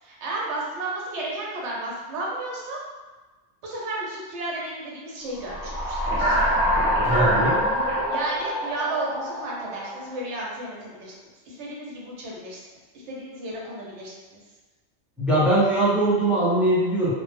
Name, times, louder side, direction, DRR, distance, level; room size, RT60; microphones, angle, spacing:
voice 1, 0.0-2.8 3.6-6.4 8.1-11.1 11.5-12.6 13.1-14.4, right 2 dB, 90° right, -4 dB, 0.9 m, -33 dB
sound 1, 5.4-10.1, equal, 35° right, 0.7 m, -24 dB
voice 2, 7.1-7.6 15.2-17.1, right 1 dB, ahead, -8 dB, 0.4 m, -21 dB
2.0 x 2.0 x 3.3 m, 1.2 s
omnidirectional pair, 1.1 m